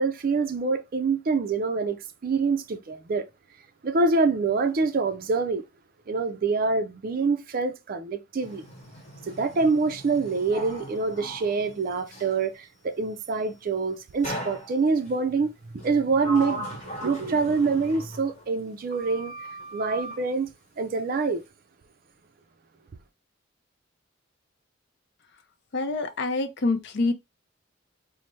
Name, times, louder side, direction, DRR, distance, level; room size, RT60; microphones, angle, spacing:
voice 1, 0.0-3.3 3.8-5.6 6.1-8.6 9.3-19.3 19.7-20.5 20.8-21.4, right 4 dB, 45° right, 0.4 m, -26 dB
Sliding door, 8.4-12.4 14.2-15.1 15.8-18.7 18.9-20.2, right 1 dB, 40° left, 1.1 m, -39 dB
voice 2, 25.7-27.1, left 3 dB, 60° left, 0.5 m, -26 dB
4.5 x 2.0 x 3.1 m
head